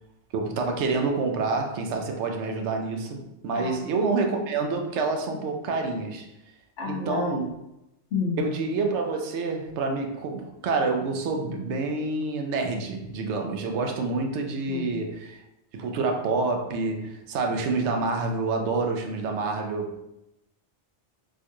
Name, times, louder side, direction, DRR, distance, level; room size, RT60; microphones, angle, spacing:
voice 1, 0.3-6.3 6.8-7.5 8.4-15.4 15.7-20.0, right 3 dB, 80° right, 3 dB, 0.9 m, -27 dB
voice 2, 6.8-7.3 8.1-8.4 14.7-14.9, left 5 dB, 85° left, -4 dB, 1.0 m, -30 dB
4.5 x 2.2 x 2.9 m, 0.88 s
omnidirectional pair, 1.2 m